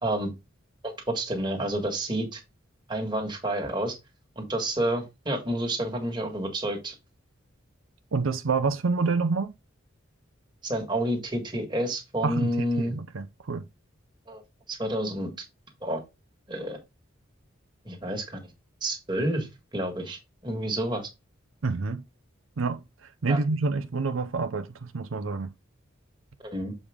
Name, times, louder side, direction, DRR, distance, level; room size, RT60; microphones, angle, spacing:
voice 1, 0.8-2.4 2.9-3.9 4.4-7.0 10.6-13.0 14.3-14.4 14.7-15.3 15.8-16.0 16.5-16.8 17.9-18.4 18.8-19.5 19.7-21.1 23.3-23.4 26.4-26.7, right 1 dB, 20° right, 1.8 m, -29 dB
voice 2, 8.1-9.5 12.2-13.6 21.6-22.0 22.6-25.5, right 4 dB, 80° right, 0.6 m, -28 dB
7.1 x 5.0 x 3.6 m
head